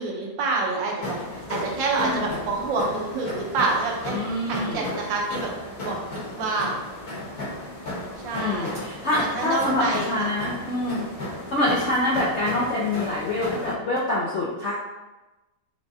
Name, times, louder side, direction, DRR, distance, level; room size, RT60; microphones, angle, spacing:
voice 1, 0.0-4.2 4.5-5.5 5.8-5.9 6.3-6.7 8.2-8.9 9.2-10.3, right 3 dB, 85° right, -2 dB, 1.6 m, -27 dB
sound 1, 1.0-13.7, left 1 dB, 55° left, 1.5 m, -34 dB
voice 2, 2.0-2.4 4.1-4.8 8.3-11.1 11.5-14.7, left 1 dB, 90° left, -5 dB, 0.6 m, -25 dB
6.1 x 2.3 x 2.7 m, 1.1 s
omnidirectional pair, 2.0 m